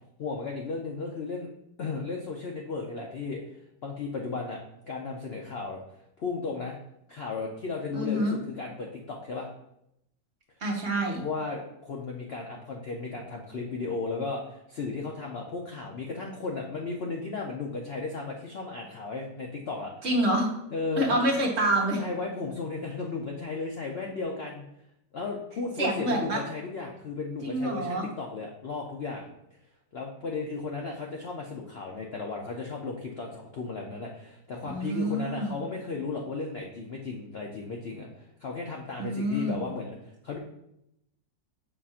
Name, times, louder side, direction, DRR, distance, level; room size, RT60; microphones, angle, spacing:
voice 1, 0.2-1.5 1.8-3.4 3.8-5.8 6.2-6.8 7.1-9.5 11.2-19.9 20.7-21.3 21.9-24.6 25.1-29.3 29.9-40.4, left 4 dB, 90° left, 0 dB, 0.5 m, -35 dB
voice 2, 7.9-8.4 10.6-11.2 20.0-20.5 21.0-22.0 25.8-26.4 27.4-28.1 34.6-35.5 39.0-39.6, right 1 dB, 45° right, -2 dB, 1.1 m, -27 dB
7.0 x 2.5 x 5.5 m, 0.80 s
omnidirectional pair, 1.9 m